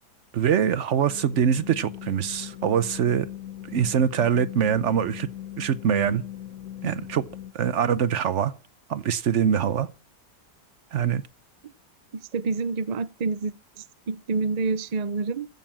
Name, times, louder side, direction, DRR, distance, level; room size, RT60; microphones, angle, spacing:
voice 1, 0.3-3.3 3.7-5.3 5.6-6.2 6.8-7.2 7.5-8.5 8.9-9.9 10.9-11.2, right 8 dB, 55° right, 0.9 m, -23 dB
sound 1, 1.0-7.5, left 12 dB, 65° left, 1.4 m, -39 dB
voice 2, 12.1-13.5 14.1-15.5, right 4 dB, 75° right, 0.3 m, -27 dB
15.0 x 6.9 x 7.3 m
omnidirectional pair, 1.8 m